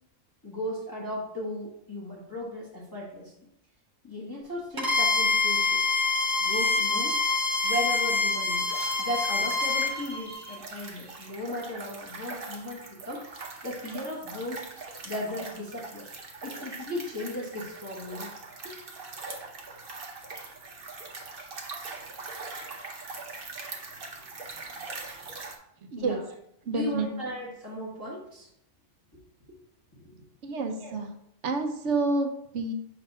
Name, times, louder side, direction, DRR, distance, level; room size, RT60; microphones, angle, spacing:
voice 1, 0.4-3.3 4.0-5.8 6.4-7.2 7.6-8.7 9.0-13.3 13.6-14.7 15.0-16.1 16.4-18.3 18.6-18.7 26.0-26.2 26.7-28.5 30.8-30.9, left 1 dB, 20° left, -5 dB, 1.3 m, -36 dB
Bowed string instrument, 4.8-9.9, left 3 dB, 25° right, 0.5 m, -26 dB
sound 1, 5.7-10.6, right 1 dB, 50° left, 1.4 m, -36 dB
sound 2, 8.7-25.6, right 3 dB, 50° right, 1.0 m, -42 dB
voice 2, 25.8-26.2 26.6-27.1 30.4-31.1 31.4-32.7, right 3 dB, 75° right, 5 dB, 1.1 m, -29 dB
7.3 x 2.6 x 5.3 m, 0.73 s
omnidirectional pair, 1.2 m